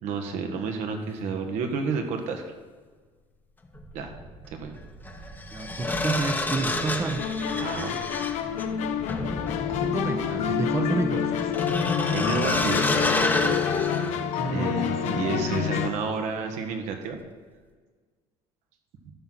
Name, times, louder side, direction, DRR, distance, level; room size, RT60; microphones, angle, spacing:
voice 1, 0.0-2.5 3.9-4.1 4.5-4.7 7.6-8.0 9.4-9.5 12.1-13.0 13.7-13.9 14.5-17.2, right 5 dB, 70° right, 5 dB, 1.4 m, -31 dB
sound 1, 3.6-3.8 5.0-14.7 15.1-15.3, left 2 dB, 15° left, 0.9 m, -29 dB
sound 2, 3.7-14.0, right 3 dB, 45° right, 1.3 m, -48 dB
voice 2, 5.5-7.2 9.6-12.0 14.3-15.7, right 4 dB, 20° right, 6 dB, 0.7 m, -31 dB
sound 3, 7.2-15.9, left 8 dB, 70° left, 0.7 m, -28 dB
12.0 x 6.1 x 4.0 m, 1.5 s
cardioid pair, 105°, 12 cm